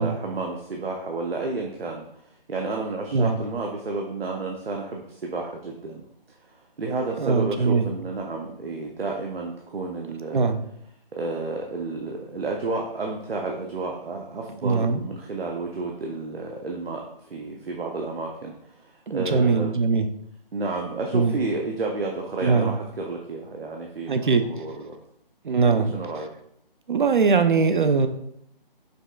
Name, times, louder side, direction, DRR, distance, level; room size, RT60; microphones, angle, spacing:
voice 1, 0.0-6.0 6.3-10.5 11.1-19.8 20.5-25.0 25.6-26.3, right 3 dB, 90° right, 1 dB, 0.7 m, -31 dB
voice 2, 7.2-7.9 10.3-10.6 14.6-15.0 19.1-20.1 21.1-21.4 22.4-22.8 24.1-24.4 25.4-25.9 26.9-28.1, right 4 dB, 60° right, 9 dB, 0.4 m, -21 dB
5.3 x 3.4 x 2.3 m, 0.74 s
figure-of-eight pair, 165°, 29 cm